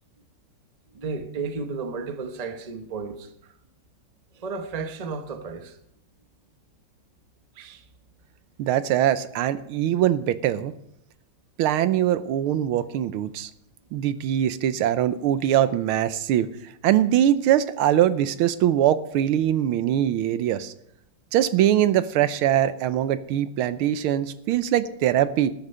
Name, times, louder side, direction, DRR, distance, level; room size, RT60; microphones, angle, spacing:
voice 1, 0.9-3.5 4.3-5.8 7.5-7.9, right 4 dB, 35° right, 0.6 m, -33 dB
voice 2, 8.6-10.7 11.6-13.5 13.9-16.5 16.8-20.7 21.3-25.5, right 11 dB, 85° right, 1.5 m, -22 dB
13.0 x 9.9 x 5.5 m
omnidirectional pair, 2.4 m